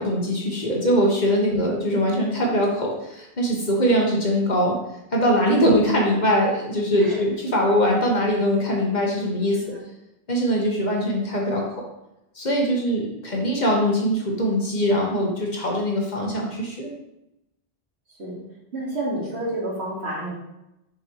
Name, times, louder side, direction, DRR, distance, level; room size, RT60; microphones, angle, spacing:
voice 1, 0.0-4.7 5.1-9.7 10.3-11.8 12.3-16.9, equal, 45° left, -1 dB, 1.3 m, -22 dB
voice 2, 9.5-9.8 18.2-18.4 18.7-20.3, right 1 dB, 80° right, -4 dB, 2.1 m, -30 dB
5.9 x 5.4 x 3.1 m, 0.87 s
omnidirectional pair, 1.1 m